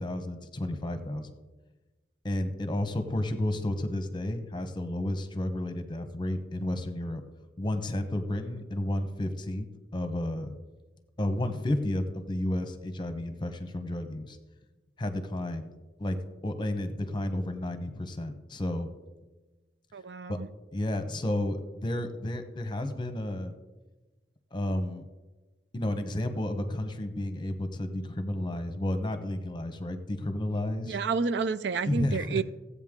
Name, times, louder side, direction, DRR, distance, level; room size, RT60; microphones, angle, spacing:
voice 1, 0.0-1.3 2.2-7.2 7.6-9.7 9.9-10.5 11.2-14.4 15.0-15.7 16.0-16.2 16.4-18.9 20.3-20.4 20.7-23.5 24.5-25.0 25.7-31.0 31.9-32.4, left 1 dB, 25° left, 8 dB, 0.9 m, -32 dB
voice 2, 19.9-20.5 30.9-32.4, right 5 dB, 75° right, 14 dB, 0.5 m, -30 dB
16.0 x 8.3 x 3.7 m, 1.2 s
head